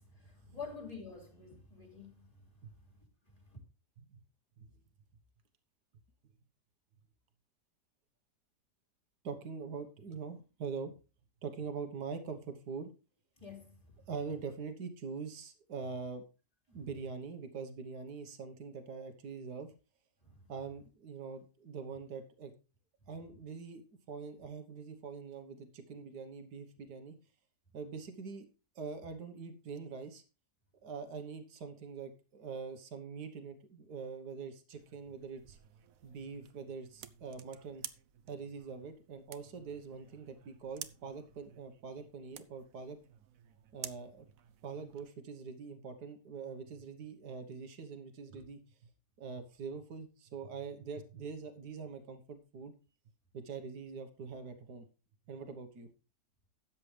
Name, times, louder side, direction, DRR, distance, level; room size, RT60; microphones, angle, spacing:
voice 1, 0.0-2.5 2.9-3.0 3.3-3.6 13.4-14.0 20.2-20.5, left 5 dB, 20° left, 3.4 m, -49 dB
voice 2, 9.2-10.9 11.4-12.9 14.1-16.2 16.7-19.7 20.5-22.5 23.1-27.2 27.7-28.5 28.8-30.2 30.8-35.6 36.0-37.8 38.3-43.0 43.7-44.3 44.6-48.6 49.2-52.7 53.3-54.8 55.3-55.9, right 5 dB, 80° right, 1.9 m, -44 dB
sound 1, 34.7-45.1, right 10 dB, 65° right, 1.1 m, -52 dB
13.0 x 8.6 x 3.3 m
omnidirectional pair, 1.7 m